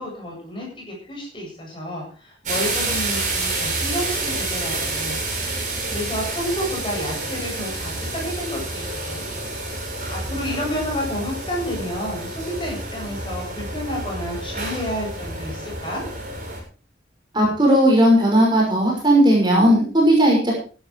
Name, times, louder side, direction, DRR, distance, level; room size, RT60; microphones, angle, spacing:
voice 1, 0.0-5.2 5.9-9.2 10.1-16.0, equal, 25° left, -2 dB, 8.0 m, -30 dB
sound 1, 2.5-16.6, right 2 dB, 40° right, 7.0 m, -29 dB
voice 2, 17.3-20.5, equal, 25° right, -2 dB, 5.9 m, -16 dB
15.5 x 12.0 x 4.8 m, 0.38 s
head